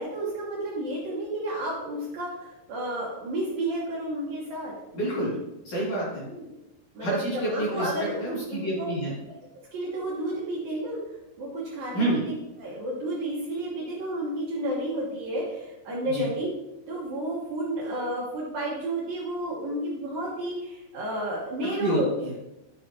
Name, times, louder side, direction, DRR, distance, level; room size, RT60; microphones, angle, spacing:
voice 1, 0.0-4.7 6.1-6.6 6.9-8.2 8.5-8.9 9.7-11.0 11.4-16.5 16.9-22.1, right 1 dB, 65° right, -5 dB, 2.6 m, -31 dB
voice 2, 4.9-5.4 5.6-6.2 7.0-9.2 11.9-12.2 16.0-16.3 21.8-22.4, right 1 dB, 50° left, -7 dB, 3.3 m, -28 dB
11.0 x 6.1 x 2.8 m, 0.95 s
omnidirectional pair, 5.4 m